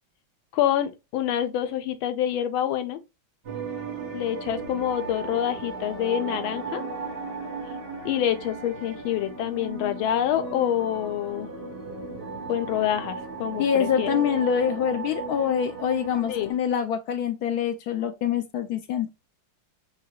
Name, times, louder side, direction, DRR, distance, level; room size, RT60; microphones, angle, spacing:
voice 1, 0.5-3.0 4.1-6.8 8.0-11.5 12.5-14.1 16.3-16.5, left 11 dB, 90° left, 1.6 m, -26 dB
sound 1, 3.4-16.5, right 4 dB, 90° right, 3.8 m, -36 dB
voice 2, 13.6-19.1, left 8 dB, 70° left, 0.9 m, -25 dB
8.1 x 2.8 x 2.2 m
omnidirectional pair, 2.2 m